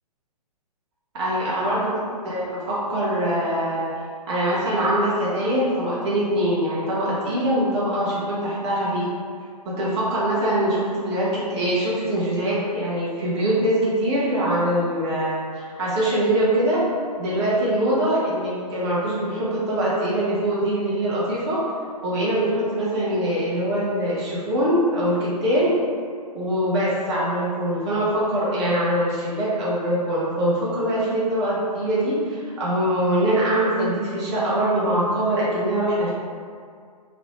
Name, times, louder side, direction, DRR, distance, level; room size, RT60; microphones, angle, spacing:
voice 1, 1.2-1.9 2.2-3.9 4.3-9.1 9.6-16.8 17.2-21.6 22.0-25.8 26.3-36.1, right 1 dB, 45° right, -8 dB, 0.8 m, -23 dB
2.5 x 2.1 x 3.0 m, 2.1 s
figure-of-eight pair, 125°, 21 cm